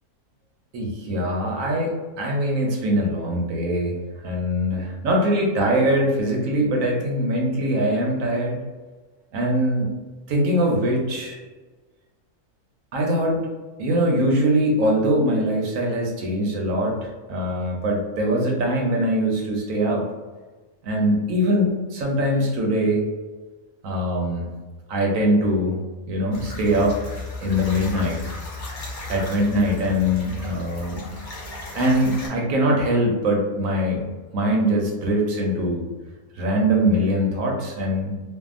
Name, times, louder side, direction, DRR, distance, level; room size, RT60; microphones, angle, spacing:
voice 1, 0.7-4.0 4.2-8.6 9.3-9.9 10.3-11.4 12.9-13.4 13.8-17.0 17.3-20.1 20.8-23.0 23.8-24.5 24.9-25.8 26.1-27.0 27.4-28.2 29.1-31.0 31.7-34.0 34.3-35.8 36.4-38.1, equal, 65° right, 0 dB, 0.9 m, -22 dB
sound 1, 26.3-32.3, left 3 dB, 60° left, 0.5 m, -35 dB
2.7 x 2.4 x 2.4 m, 1.3 s
omnidirectional pair, 1.7 m